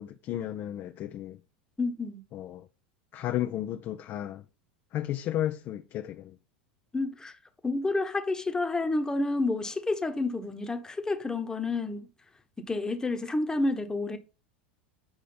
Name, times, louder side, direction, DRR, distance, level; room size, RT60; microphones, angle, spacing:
voice 1, 0.0-1.4 2.3-2.7 3.1-4.4 4.9-6.3, left 12 dB, 45° left, 0.7 m, -33 dB
voice 2, 1.8-2.2 6.9-7.4 7.6-12.1 12.6-14.2, left 2 dB, 10° left, 1.3 m, -29 dB
8.7 x 4.9 x 4.0 m
hypercardioid pair, 90°, 5 cm